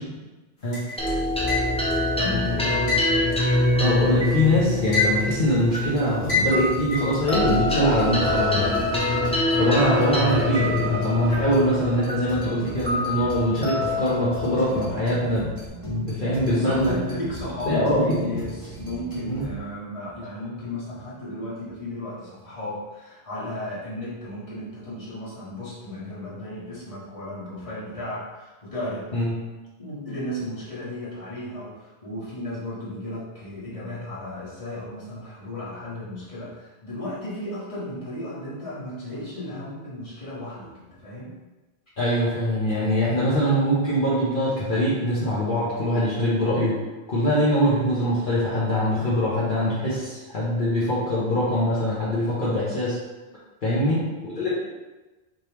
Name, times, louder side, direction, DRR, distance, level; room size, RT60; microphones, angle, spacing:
sound 1, 0.7-2.0 2.9-4.3 4.6-5.5 6.3-7.2, left 3 dB, 85° left, 1.6 m, -26 dB
sound 2, 1.0-15.7, left 1 dB, 10° left, 0.5 m, -25 dB
voice 1, 2.1-3.0 16.5-29.1 29.8-41.3 53.7-54.0, left 1 dB, 35° left, -8 dB, 1.5 m, -34 dB
voice 2, 3.8-8.7 9.6-15.5 15.8-16.9 17.6-18.4 19.3-19.5 29.1-29.3 42.0-46.8 47.1-53.0 53.6-54.5, equal, 55° left, -9 dB, 1.1 m, -23 dB
sound 3, 5.8-19.5, right 2 dB, 30° right, 1.3 m, -40 dB
5.0 x 3.4 x 3.0 m, 1.2 s
omnidirectional pair, 1.0 m